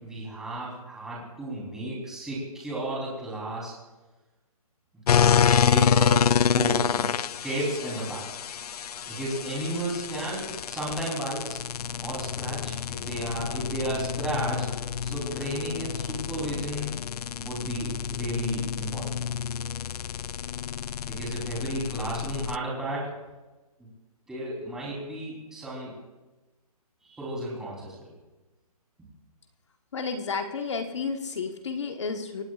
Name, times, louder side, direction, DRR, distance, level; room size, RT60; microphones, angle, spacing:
voice 1, 0.0-3.7 5.3-7.1 7.4-8.2 9.1-11.6 12.0-14.7 15.0-17.0 17.4-19.1 21.1-23.1 23.8-23.9 24.3-25.9 27.0-28.1, right 1 dB, 5° right, -5 dB, 3.5 m, -33 dB
sound 1, 5.1-22.6, left 7 dB, 80° left, 0.4 m, -28 dB
voice 2, 29.9-32.4, left 5 dB, 50° left, 5 dB, 1.3 m, -31 dB
25.5 x 17.5 x 2.4 m, 1.1 s
hypercardioid pair, 175°, 19 cm